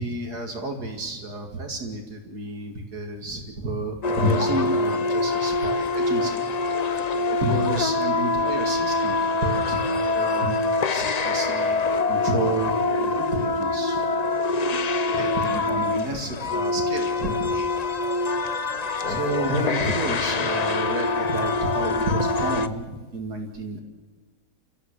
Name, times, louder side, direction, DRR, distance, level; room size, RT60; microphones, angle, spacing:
voice 1, 0.0-6.4 7.3-10.6 10.9-14.0 15.1-17.6 19.0-23.8, right 1 dB, 65° right, 4 dB, 3.0 m, -30 dB
sound 1, 4.0-22.7, left 3 dB, 75° left, 0.3 m, -24 dB
28.5 x 13.5 x 8.3 m, 1.2 s
omnidirectional pair, 1.8 m